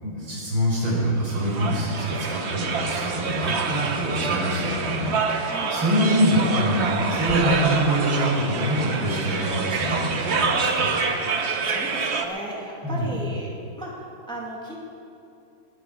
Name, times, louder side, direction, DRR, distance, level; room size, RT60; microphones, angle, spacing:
voice 1, 0.0-10.9 12.8-13.2, equal, 80° right, -5 dB, 5.3 m, -25 dB
sound 1, 1.3-12.3, right 5 dB, 55° right, 0.7 m, -26 dB
voice 2, 5.4-5.8 9.4-9.5 11.3-13.5 13.8-14.8, right 1 dB, ahead, -3 dB, 2.0 m, -36 dB
20.5 x 10.0 x 5.0 m, 2.7 s
omnidirectional pair, 2.3 m